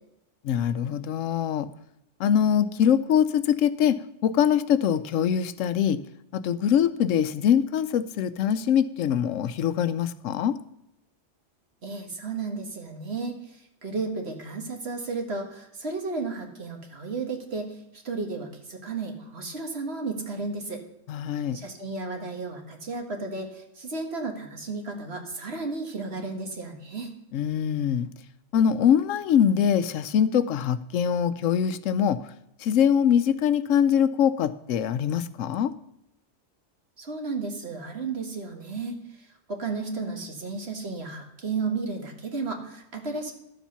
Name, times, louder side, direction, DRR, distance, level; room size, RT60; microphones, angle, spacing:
voice 1, 0.4-1.7 2.2-6.0 6.3-10.6 21.1-21.6 27.3-28.1 28.5-32.2 32.6-35.7, left 8 dB, 85° left, 14 dB, 1.0 m, -23 dB
voice 2, 11.8-20.8 21.5-27.1 37.0-43.3, right 3 dB, 55° right, 3 dB, 1.8 m, -33 dB
12.0 x 7.3 x 5.6 m, 0.82 s
omnidirectional pair, 1.3 m